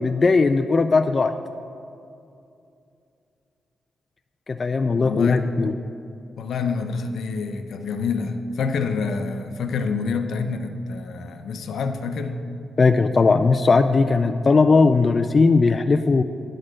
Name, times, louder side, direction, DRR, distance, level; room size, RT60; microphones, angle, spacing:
voice 1, 0.0-1.3 4.5-5.7 12.8-16.2, left 4 dB, 35° left, 8 dB, 0.3 m, -18 dB
voice 2, 5.0-5.7 6.4-12.4, left 4 dB, 75° left, 7 dB, 0.7 m, -27 dB
9.9 x 6.5 x 6.3 m, 2.6 s
cardioid pair, 120°, 0 cm